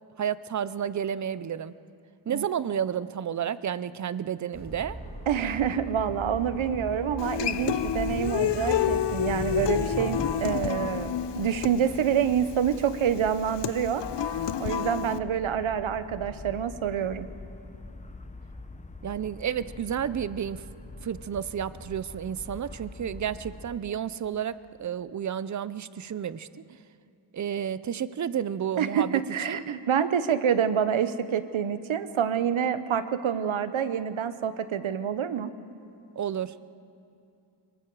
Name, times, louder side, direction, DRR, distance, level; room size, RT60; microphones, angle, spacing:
voice 1, 0.2-1.7 2.3-5.0 19.0-20.6 21.0-26.5 27.3-29.2 29.5-29.6 36.2-36.5, right 8 dB, 40° right, 16 dB, 0.5 m, -31 dB
sound 1, 4.5-10.2, right 1 dB, 10° right, 2.1 m, -38 dB
sound 2, 4.7-23.7, left 2 dB, 15° left, 0.7 m, -45 dB
voice 2, 5.3-14.0 14.6-17.3 28.8-35.5, right 8 dB, 80° right, 12 dB, 0.9 m, -27 dB
Human voice / Acoustic guitar, 7.2-15.2, left 10 dB, 65° left, 0.6 m, -29 dB
24.5 x 23.5 x 4.7 m, 2.5 s
wide cardioid pair, 145°, 47 cm